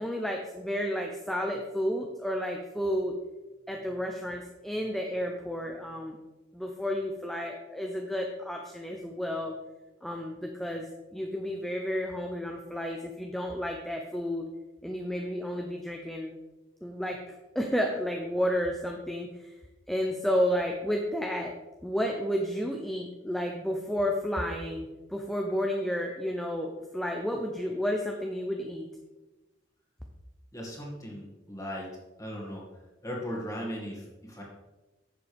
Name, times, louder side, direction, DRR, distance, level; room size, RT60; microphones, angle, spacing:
voice 1, 0.0-3.1 3.7-6.2 6.5-9.6 10.0-14.5 14.8-16.3 16.8-19.5 19.9-21.5 21.8-28.9, equal, ahead, 1 dB, 0.6 m, -31 dB
voice 2, 30.5-31.9 32.2-32.6 33.0-34.4, equal, 15° left, -2 dB, 2.0 m, -37 dB
10.5 x 7.4 x 3.5 m, 1.1 s
head